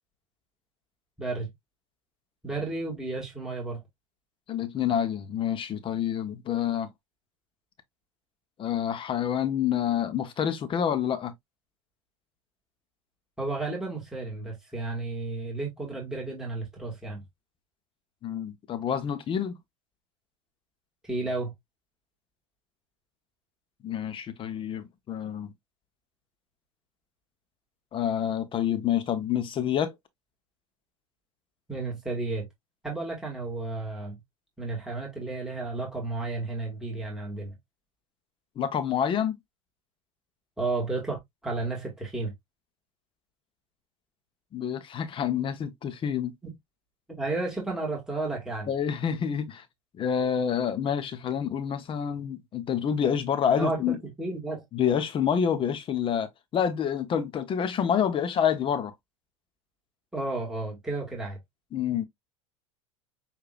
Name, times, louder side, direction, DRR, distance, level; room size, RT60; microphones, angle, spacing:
voice 1, 1.2-1.5 2.4-3.8 13.4-17.2 21.0-21.5 31.7-32.5 32.8-34.2 34.6-37.6 40.6-42.3 46.4-46.5 47.1-48.7 53.6-54.7 60.1-61.4, right 3 dB, 5° right, 2.0 m, -32 dB
voice 2, 4.5-6.9 8.6-11.3 18.2-19.6 23.8-25.5 27.9-29.9 38.6-39.4 44.5-46.3 48.7-49.6 50.0-54.0 54.7-58.9 61.7-62.0, left 8 dB, 35° left, 1.0 m, -28 dB
6.7 x 2.8 x 2.5 m
hypercardioid pair, 95°, 16 cm